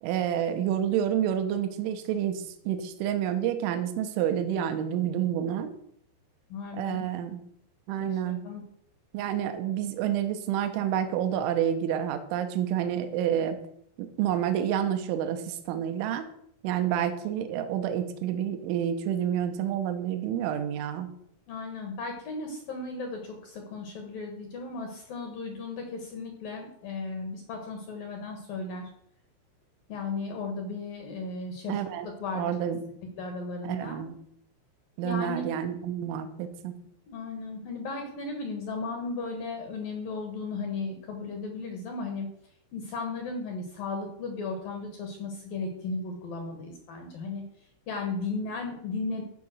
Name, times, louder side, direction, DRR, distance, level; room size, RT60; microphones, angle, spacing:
voice 1, 0.0-5.7 6.7-7.4 7.9-8.4 9.1-13.6 14.0-16.3 16.6-21.1 31.7-32.1 32.4-32.8 33.6-34.2 35.0-36.8, right 10 dB, 80° right, 8 dB, 3.3 m, -29 dB
voice 2, 6.5-7.1 8.1-8.6 21.5-28.9 29.9-31.7 32.0-32.5 33.2-34.0 35.0-35.5 37.1-42.3 42.7-47.4 47.9-49.2, left 3 dB, 65° left, 3 dB, 2.4 m, -35 dB
14.5 x 5.4 x 6.3 m, 0.70 s
omnidirectional pair, 5.9 m